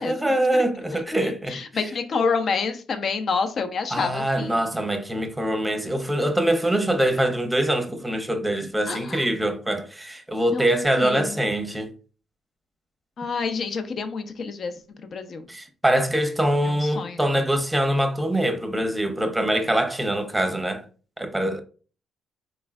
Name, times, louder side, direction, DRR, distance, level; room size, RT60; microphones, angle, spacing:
voice 1, 0.0-1.6 3.9-11.9 15.5-20.8 21.2-21.6, right 1 dB, 10° right, 0.7 m, -24 dB
voice 2, 1.2-4.6 8.9-9.2 10.5-10.7 11.0-11.4 13.2-14.8 15.0-15.5 16.6-17.2, left 5 dB, 50° left, 0.6 m, -28 dB
4.2 x 3.1 x 2.4 m
cardioid pair, 90°, 0 cm